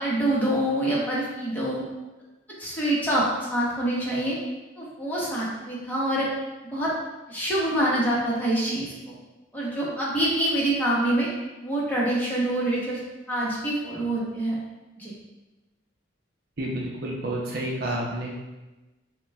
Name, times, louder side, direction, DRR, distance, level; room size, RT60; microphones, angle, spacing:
voice 1, 0.0-1.8 2.6-4.4 4.8-6.3 6.6-6.9 7.3-9.2 9.5-11.3 11.6-13.0 13.3-14.5 15.0-15.1, right 1 dB, 10° left, -7 dB, 1.0 m, -26 dB
voice 2, 16.6-18.3, right 1 dB, 50° right, -2 dB, 0.7 m, -30 dB
6.8 x 2.3 x 3.4 m, 1.1 s
head